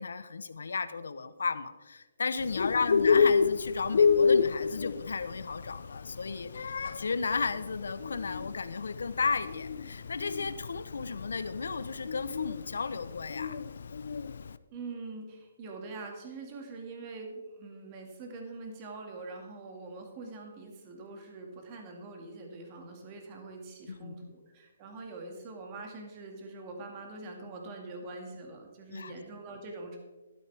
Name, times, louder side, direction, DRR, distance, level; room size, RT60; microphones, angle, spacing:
voice 1, 0.0-13.6 23.9-24.3 28.9-29.1, left 4 dB, 85° left, 12 dB, 0.9 m, -34 dB
Bird, 2.4-14.5, left 5 dB, 65° left, 0.5 m, -29 dB
voice 2, 14.7-30.0, right 3 dB, 25° right, 2 dB, 2.1 m, -44 dB
12.5 x 12.0 x 3.5 m, 1.2 s
hypercardioid pair, 165°, 0 cm